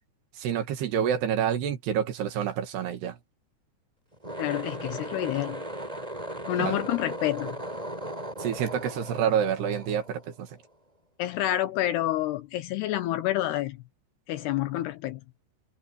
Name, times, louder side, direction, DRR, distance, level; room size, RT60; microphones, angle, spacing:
voice 1, 0.4-3.2 6.6-6.8 8.4-10.5, right 9 dB, 65° right, 3.8 m, -28 dB
sound 1, 4.1-10.7, right 1 dB, 5° right, 7.3 m, -37 dB
voice 2, 4.4-5.6 6.5-7.6 11.2-13.8 14.3-15.2, left 14 dB, 75° left, 2.6 m, -28 dB
omnidirectional pair, 5.3 m